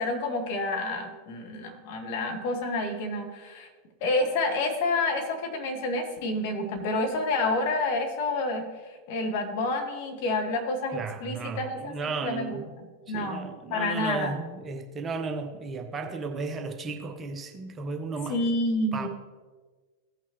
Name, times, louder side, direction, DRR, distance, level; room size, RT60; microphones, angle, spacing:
voice 1, 0.0-3.7 4.0-8.7 9.1-11.9 12.2-14.3 18.3-19.1, left 2 dB, 45° left, 1.6 m, -29 dB
voice 2, 10.9-12.7 13.1-18.4 18.9-19.1, right 4 dB, 20° right, 0.8 m, -34 dB
16.0 x 5.8 x 3.0 m
figure-of-eight pair, 90°, 0 cm